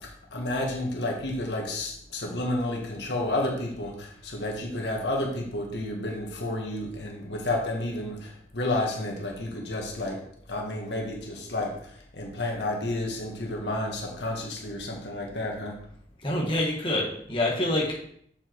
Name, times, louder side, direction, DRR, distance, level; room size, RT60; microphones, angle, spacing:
voice 1, 0.0-10.2 10.5-15.8, left 1 dB, 85° left, 0 dB, 1.9 m, -31 dB
voice 2, 16.2-18.1, left 1 dB, 30° left, -3 dB, 1.8 m, -26 dB
7.3 x 5.6 x 4.7 m, 0.66 s
head